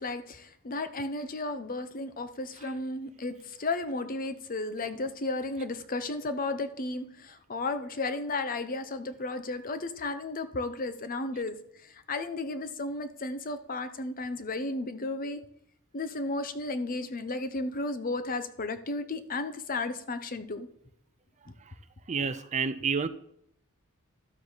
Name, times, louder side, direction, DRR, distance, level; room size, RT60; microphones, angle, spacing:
voice 1, 0.0-11.6 12.1-15.4 15.9-20.7, left 2 dB, 40° left, 10 dB, 0.8 m, -34 dB
voice 2, 22.1-23.1, right 5 dB, 30° right, 12 dB, 0.5 m, -30 dB
12.0 x 7.4 x 4.1 m, 0.70 s
head